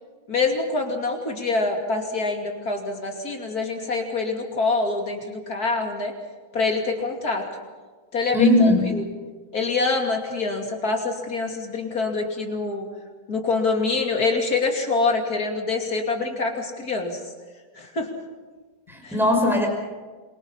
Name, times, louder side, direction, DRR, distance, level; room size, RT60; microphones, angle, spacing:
voice 1, 0.3-6.1 6.5-7.5 8.1-9.0 9.5-12.9 13.3-17.2 17.7-18.1 19.0-19.2, left 3 dB, 50° left, 2 dB, 3.2 m, -25 dB
voice 2, 8.3-8.9 18.9-19.7, left 1 dB, ahead, 1 dB, 5.3 m, -19 dB
27.0 x 23.5 x 5.6 m, 1.4 s
omnidirectional pair, 2.0 m